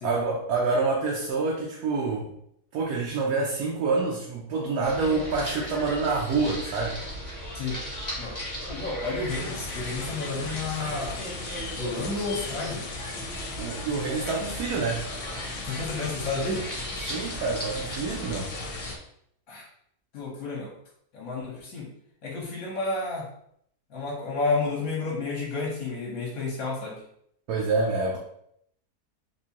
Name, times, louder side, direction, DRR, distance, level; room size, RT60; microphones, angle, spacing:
voice 1, 0.0-2.3 2.7-7.0 13.6-15.0 17.0-18.5 27.5-28.2, right 3 dB, 70° right, -2 dB, 1.1 m, -27 dB
sound 1, 4.8-19.0, equal, 15° left, 0.8 m, -37 dB
voice 2, 8.7-11.2 11.7-12.9 15.6-16.7 19.5-19.7 20.1-20.7 21.1-21.9 22.2-23.3 23.9-27.0, left 3 dB, 65° left, -4 dB, 1.2 m, -31 dB
sound 2, 9.3-18.9, left 4 dB, 80° left, 1.2 m, -38 dB
3.6 x 2.7 x 2.8 m, 0.70 s
omnidirectional pair, 1.7 m